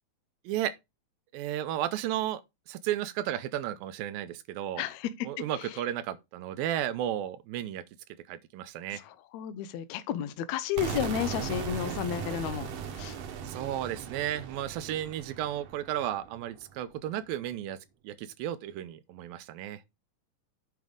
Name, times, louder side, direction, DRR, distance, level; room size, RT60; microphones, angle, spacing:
voice 1, 1.3-2.4 2.7-4.8 5.2-7.8 8.3-9.0 13.4-17.8 18.0-19.8, right 12 dB, 80° right, 2.3 m, -33 dB
voice 2, 4.8-5.3 5.6-5.7 8.9-12.7 13.0-13.2, left 10 dB, 75° left, 1.6 m, -32 dB
sound 1, 10.8-16.6, right 7 dB, 60° right, 1.8 m, -38 dB
9.1 x 5.3 x 3.8 m
omnidirectional pair, 4.1 m